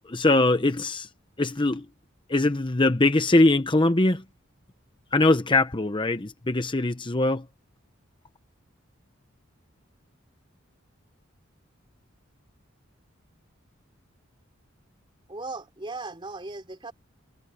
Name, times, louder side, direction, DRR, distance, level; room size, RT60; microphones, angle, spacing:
voice 1, 0.1-1.1 1.4-1.8 2.3-4.2 5.1-7.4, left 2 dB, 25° left, 0.9 m, -22 dB
voice 2, 15.3-16.9, right 3 dB, 25° right, 3.1 m, -37 dB
head